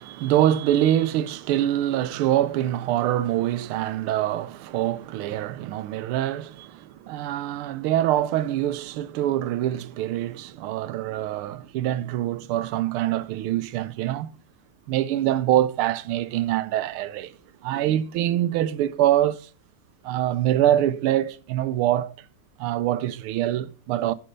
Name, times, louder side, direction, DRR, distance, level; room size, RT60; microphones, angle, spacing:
voice 1, 0.0-14.3 14.9-17.4 17.6-19.5 20.0-22.1 22.6-24.1, right 12 dB, 90° right, 1.5 m, -24 dB
11.5 x 5.6 x 5.2 m
omnidirectional pair, 2.3 m